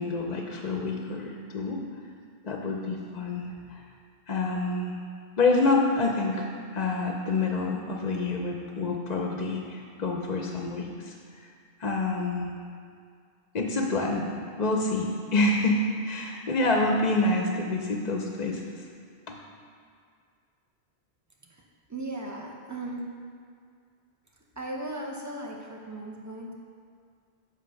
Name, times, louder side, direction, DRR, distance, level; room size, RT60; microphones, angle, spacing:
voice 1, 0.0-1.8 2.4-3.8 4.3-5.0 5.4-11.1 11.8-12.5 13.5-14.3 14.6-15.8 16.0-18.6 19.3-19.4, left 3 dB, 45° left, 1 dB, 0.7 m, -27 dB
voice 2, 21.9-23.0 24.6-26.5, right 1 dB, 20° right, -1 dB, 0.8 m, -37 dB
9.3 x 3.3 x 6.3 m, 2.2 s
omnidirectional pair, 1.1 m